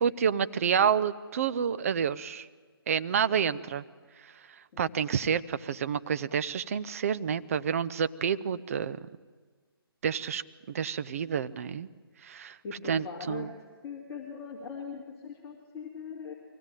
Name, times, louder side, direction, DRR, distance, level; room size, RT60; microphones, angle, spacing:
voice 1, 0.0-2.5 2.9-3.8 4.8-9.1 10.0-10.4 10.7-11.9 12.2-12.6 12.9-13.5, right 7 dB, 35° right, 13 dB, 0.6 m, -29 dB
voice 2, 12.4-13.5 13.8-16.3, left 5 dB, 20° left, -4 dB, 2.6 m, -41 dB
23.5 x 16.5 x 9.0 m, 1.5 s
figure-of-eight pair, 150°, 13 cm